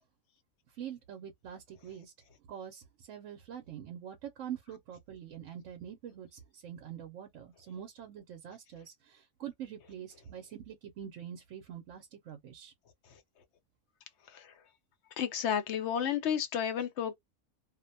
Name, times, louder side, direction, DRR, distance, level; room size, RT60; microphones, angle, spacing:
voice 1, 0.7-2.1 2.5-12.7, right 9 dB, 70° right, 0.9 m, -45 dB
voice 2, 15.2-17.1, left 8 dB, 65° left, 0.8 m, -32 dB
2.5 x 2.1 x 2.5 m
omnidirectional pair, 1.4 m